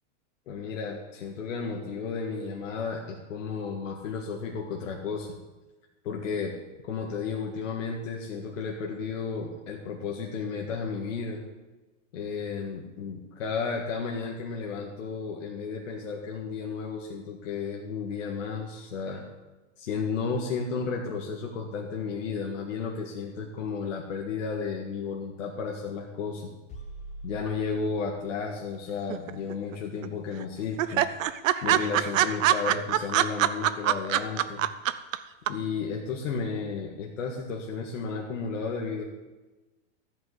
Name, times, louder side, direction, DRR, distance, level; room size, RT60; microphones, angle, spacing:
voice 1, 0.5-5.4 6.0-6.5 6.8-11.4 12.1-19.2 19.8-26.5 27.2-31.1 31.6-34.7 35.5-39.0, left 5 dB, 80° left, -1 dB, 1.8 m, -33 dB
sound 1, 26.7-28.5, right 1 dB, 20° left, 1.4 m, -43 dB
sound 2, 29.1-29.7 30.0-30.1 30.4-30.5 30.8-35.2 35.5-35.6, right 12 dB, 85° right, 0.8 m, -23 dB
13.5 x 5.7 x 8.0 m, 1.2 s
supercardioid pair, 155°, 38 cm